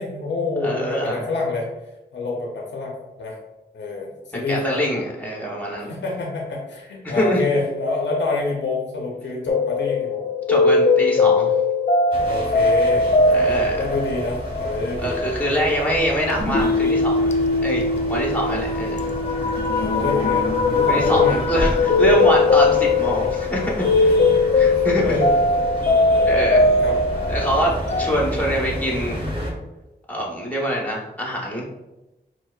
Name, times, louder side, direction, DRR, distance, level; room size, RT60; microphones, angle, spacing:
voice 1, 0.0-1.7 2.1-2.9 3.2-3.4 3.7-4.8 5.9-10.2 12.2-15.6 19.7-21.8 22.1-22.2 24.2-24.7 25.0-25.4 26.1-26.3 26.8-27.0, left 3 dB, 85° left, -2 dB, 0.6 m, -27 dB
voice 2, 0.6-1.3 4.5-5.9 7.0-7.5 10.5-11.5 13.3-13.8 15.0-17.3 17.6-17.8 18.1-19.1 20.9-24.2 24.6-25.2 26.2-26.7 27.3-27.7 28.0-29.2 30.1-31.7, equal, 10° left, -3 dB, 0.9 m, -24 dB
sound 1, 9.5-28.1, left 3 dB, 40° left, 0.4 m, -20 dB
sound 2, 12.1-29.5, equal, 30° right, 0.9 m, -32 dB
sound 3, 16.4-29.6, equal, 70° right, 0.9 m, -37 dB
4.4 x 2.0 x 2.3 m, 1.0 s
wide cardioid pair, 60°, 18 cm